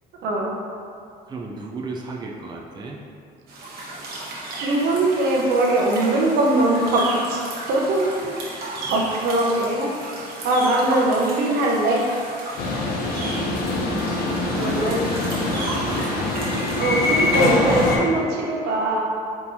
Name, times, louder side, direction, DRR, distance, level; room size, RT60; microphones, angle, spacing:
voice 1, 0.2-0.6 4.5-7.4 7.7-8.4 8.9-9.9 10.2-12.2 14.5-15.2 16.7-19.0, right 2 dB, 75° right, -1 dB, 0.8 m, -21 dB
voice 2, 1.3-3.0 8.8-9.1 14.1-16.1, right 3 dB, 25° right, -1 dB, 0.4 m, -34 dB
sound 1, 3.5-17.3, right 2 dB, 60° right, 1.3 m, -34 dB
sound 2, 12.6-18.0, left 2 dB, 65° left, 0.7 m, -23 dB
4.4 x 3.6 x 2.7 m, 2.4 s
cardioid pair, 110°, 17 cm